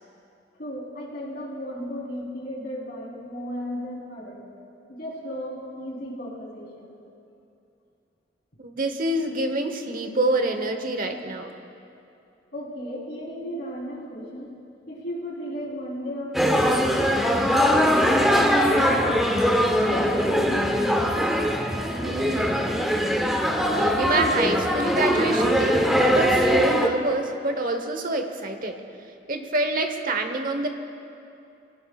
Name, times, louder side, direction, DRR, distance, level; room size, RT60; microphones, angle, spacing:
voice 1, 0.6-4.5 4.9-6.9 12.5-14.5 14.9-19.2 19.8-21.0, equal, 60° left, -5 dB, 3.7 m, -35 dB
voice 2, 8.6-11.5 22.0-22.8 23.6-28.8 29.3-30.7, right 2 dB, 50° right, 6 dB, 1.0 m, -27 dB
sound 1, 16.3-26.9, equal, ahead, 0.9 m, -21 dB
24.0 x 17.5 x 2.4 m, 2.6 s
head